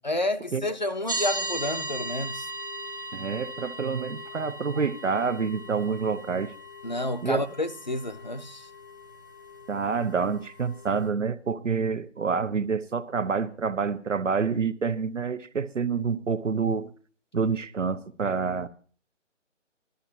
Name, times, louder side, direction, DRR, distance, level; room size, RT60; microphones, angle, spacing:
voice 1, 0.0-2.5 6.8-8.7, left 1 dB, 40° left, 0.5 m, -30 dB
sound 1, 1.1-11.1, right 1 dB, 15° right, 0.7 m, -38 dB
voice 2, 3.1-6.5 7.2-7.4 9.7-16.9 17.3-18.7, right 5 dB, 80° right, 1.2 m, -27 dB
19.5 x 13.0 x 2.9 m
figure-of-eight pair, 170°, 37 cm